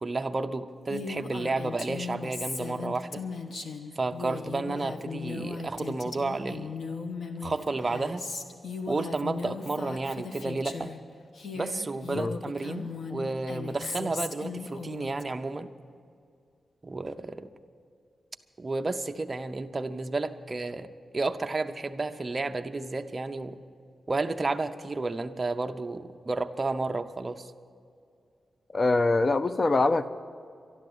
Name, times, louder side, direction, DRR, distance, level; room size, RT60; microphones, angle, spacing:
voice 1, 0.0-3.2 4.0-6.7 7.4-8.2 8.9-10.9 11.5-15.7 16.8-17.5 18.6-20.9 21.1-23.6 24.1-27.5, right 3 dB, 30° right, 6 dB, 0.6 m, -31 dB
Female speech woman speaking, 0.9-11.0 11.3-15.2, left 4 dB, 70° left, 1.2 m, -37 dB
voice 2, 28.7-30.1, left 2 dB, 35° left, 13 dB, 0.5 m, -23 dB
12.0 x 12.0 x 8.0 m, 2.4 s
wide cardioid pair, 130°, 0 cm